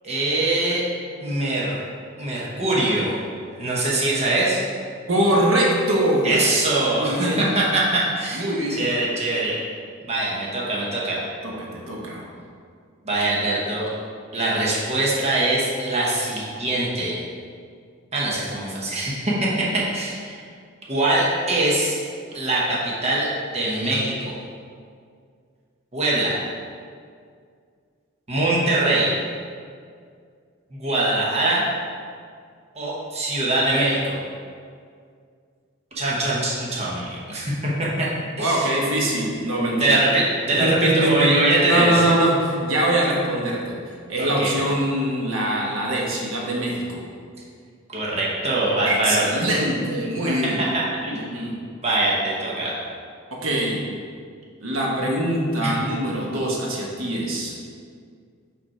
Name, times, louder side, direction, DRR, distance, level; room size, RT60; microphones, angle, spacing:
voice 1, 0.0-0.9 1.2-1.8 2.2-3.1 3.6-4.6 6.2-8.4 8.7-9.6 10.0-11.2 13.0-13.9 14.3-17.2 18.1-20.4 20.9-22.0 22.3-24.4 25.9-26.4 28.3-29.1 30.7-31.6 32.7-34.2 35.9-38.1 38.4-38.7 39.8-42.0 44.2-44.5 47.9-49.3 50.3-51.3 51.8-52.7 55.6-55.7, right 2 dB, 35° right, -5 dB, 1.1 m, -23 dB
voice 2, 5.1-6.4 6.9-7.5 8.3-8.9 11.4-12.3 38.4-40.0 40.6-41.3 41.7-43.8 44.1-47.0 48.8-50.7 51.1-51.5 53.4-53.8 54.6-57.5, right 1 dB, 85° right, -2 dB, 1.2 m, -23 dB
5.2 x 5.2 x 4.3 m, 2.2 s
head